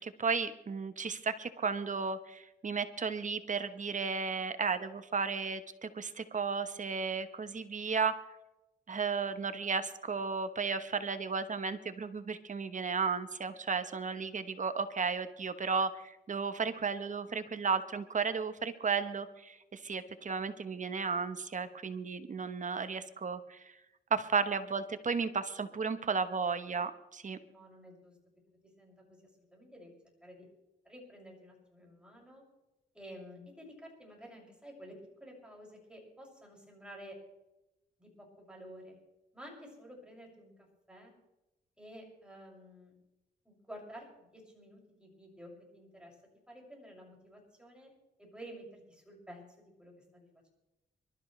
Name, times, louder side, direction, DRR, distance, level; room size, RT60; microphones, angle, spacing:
voice 1, 0.0-8.1 8.9-23.7 24.1-27.4, right 5 dB, 45° right, 11 dB, 1.1 m, -34 dB
voice 2, 27.5-28.1 28.8-29.9 30.2-30.5 30.8-32.4 32.9-37.2 38.0-39.0 39.3-41.1 41.8-42.9 43.4-46.1 46.5-47.9 48.2-50.5, equal, 5° right, -1 dB, 6.5 m, -51 dB
24.5 x 13.0 x 3.3 m, 0.96 s
cardioid pair, 80°, 18 cm